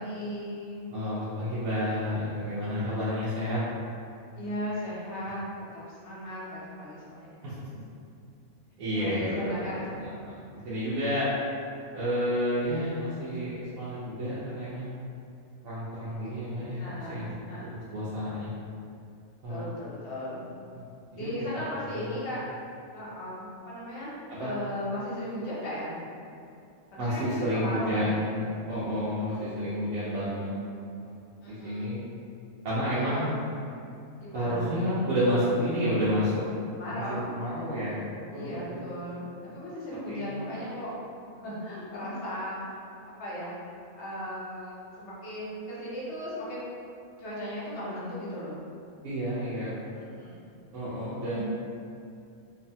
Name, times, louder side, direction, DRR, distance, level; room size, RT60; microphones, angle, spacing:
voice 1, 0.0-0.9 4.4-5.5 5.7-7.4 8.9-9.8 16.8-17.9 19.5-20.5 21.1-22.4 22.9-26.0 26.9-28.3 29.3-29.4 31.4-31.9 32.9-33.4 34.2-34.7 36.7-37.4 38.3-40.9 41.4-42.6 43.2-43.5 43.9-46.6 47.2-48.6 49.9-50.4 51.2-51.4, equal, 65° left, -7 dB, 0.9 m, -37 dB
voice 2, 0.9-3.6 7.4-7.5 8.8-11.3 11.9-14.9 15.6-16.8 17.1-17.3 17.6-18.5 19.4-19.7 20.7-20.8 21.1-22.4 24.3-24.5 27.0-30.5 31.5-32.1 32.6-33.3 34.3-36.4 37.0-38.0 38.3-38.9 40.1-40.3 49.0-49.8 50.7-51.4, equal, 85° right, -11 dB, 1.0 m, -30 dB
2.7 x 2.1 x 2.6 m, 2.5 s
omnidirectional pair, 1.4 m